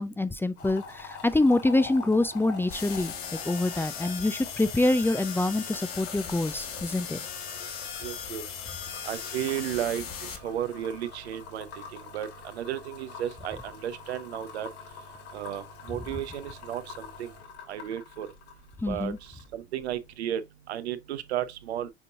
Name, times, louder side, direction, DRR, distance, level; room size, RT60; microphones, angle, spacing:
voice 1, 0.0-3.1 3.4-7.2 18.8-19.2, left 2 dB, 5° left, 0.5 m, -26 dB
sound 1, 0.6-19.5 19.8-20.1, left 5 dB, 70° left, 3.2 m, -46 dB
sound 2, 2.7-10.4, left 7 dB, 40° left, 1.8 m, -38 dB
voice 2, 8.0-8.4 9.0-11.7 11.9-14.7 15.3-17.3 17.7-18.3 18.9-19.1 19.5-20.4 20.7-21.9, right 11 dB, 80° right, 0.9 m, -33 dB
7.2 x 5.3 x 2.5 m
hypercardioid pair, 75°, 33 cm